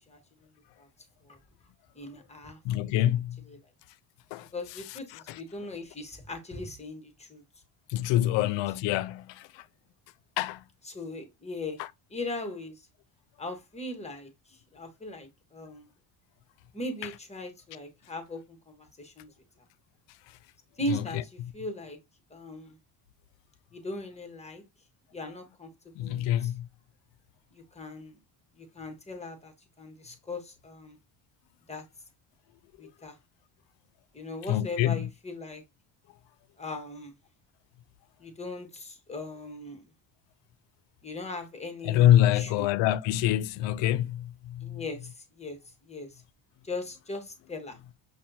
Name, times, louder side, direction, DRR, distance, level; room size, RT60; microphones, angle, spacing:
voice 1, 1.9-2.9 3.5-3.6 4.5-7.4 8.1-8.5 10.8-11.8 12.1-12.9 13.4-15.9 16.7-19.3 20.8-22.0 22.3-22.7 23.7-24.6 25.1-25.7 26.0-26.5 27.5-28.2 28.6-31.0 31.7-31.8 32.8-33.1 34.1-35.6 36.6-37.1 38.2-39.8 41.0-42.7 44.6-45.6 45.9-46.2 46.6-47.8, left 2 dB, 15° left, 1.2 m, -39 dB
voice 2, 2.6-3.4 4.3-4.5 5.1-5.4 7.9-9.6 10.4-10.6 11.8-11.9 20.9-21.2 26.0-26.7 34.5-35.1 41.8-44.8, left 13 dB, 70° left, 0.5 m, -26 dB
5.4 x 2.3 x 2.7 m
supercardioid pair, 85°, 45 cm